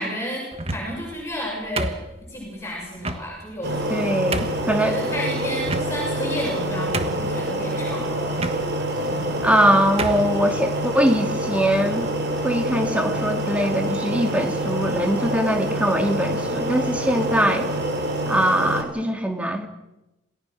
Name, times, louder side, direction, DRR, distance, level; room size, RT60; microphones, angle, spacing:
voice 1, 0.0-2.0 2.3-4.1 4.4-8.4 9.1-9.4, equal, 15° left, -2 dB, 6.8 m, -32 dB
sound 1, 0.5-1.1 1.8-2.4 3.0-3.2 3.8-3.9 4.3-4.7 5.6-6.2 6.6-6.7 6.9-7.4 8.4-8.6 9.4-9.6 10.0-10.3, right 2 dB, 30° right, 1.4 m, -28 dB
sound 2, 3.6-18.8, right 1 dB, 55° right, 4.2 m, -26 dB
voice 2, 3.9-5.0 9.4-12.1 12.4-17.7 18.3-19.7, equal, 5° right, 5 dB, 2.2 m, -22 dB
28.0 x 18.0 x 6.3 m, 0.97 s
head